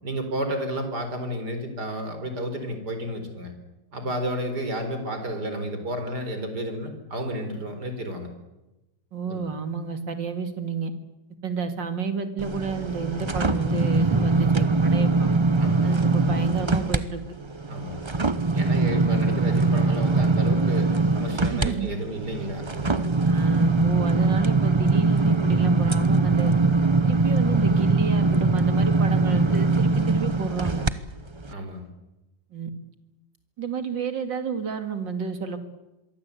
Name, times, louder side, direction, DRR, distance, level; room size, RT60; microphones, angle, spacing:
voice 1, 0.0-3.5 3.9-8.3 9.3-9.4 15.6-15.9 17.7-18.0 18.5-23.1 31.5-31.9, equal, 65° right, 7 dB, 5.0 m, -31 dB
voice 2, 9.1-10.9 11.4-15.3 15.8-17.3 18.7-19.1 21.5-21.9 23.2-26.5 27.0-30.8 32.5-32.7 33.6-35.6, right 5 dB, 85° right, 8 dB, 3.1 m, -30 dB
sound 1, 12.4-17.0 17.4-30.9 31.4-31.5, right 3 dB, 25° right, 0.7 m, -22 dB
27.0 x 23.0 x 8.5 m, 1.0 s
omnidirectional pair, 1.9 m